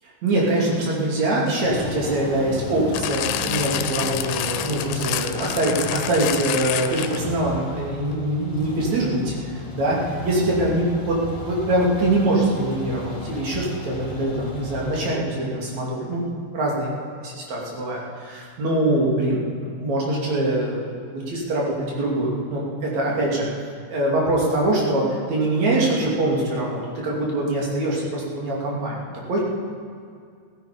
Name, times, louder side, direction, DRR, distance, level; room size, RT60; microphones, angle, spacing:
voice 1, 0.2-11.2 11.4-23.5 23.9-29.4, right 1 dB, 45° right, -4 dB, 3.5 m, -23 dB
sound 1, 1.6-15.1, left 2 dB, 55° left, 1.2 m, -35 dB
sound 2, 2.9-7.4 8.1-8.2, left 12 dB, 90° left, 3.0 m, -28 dB
16.0 x 15.5 x 5.1 m, 2.2 s
omnidirectional pair, 5.3 m